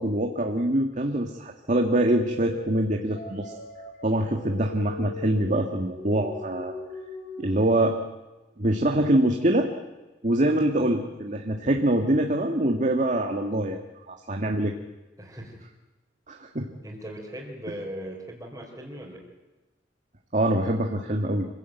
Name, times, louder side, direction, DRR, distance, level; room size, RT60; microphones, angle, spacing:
voice 1, 0.0-3.5 4.0-6.7 7.4-8.0 8.6-9.7 10.2-13.8 14.1-14.7 16.3-16.7 20.3-21.5, right 1 dB, 45° right, 3 dB, 1.7 m, -24 dB
sound 1, 1.9-7.5, equal, 60° left, 7.7 m, -40 dB
voice 2, 15.2-15.6 16.8-19.2, equal, 15° right, -6 dB, 4.3 m, -39 dB
25.5 x 16.5 x 9.2 m, 1.1 s
head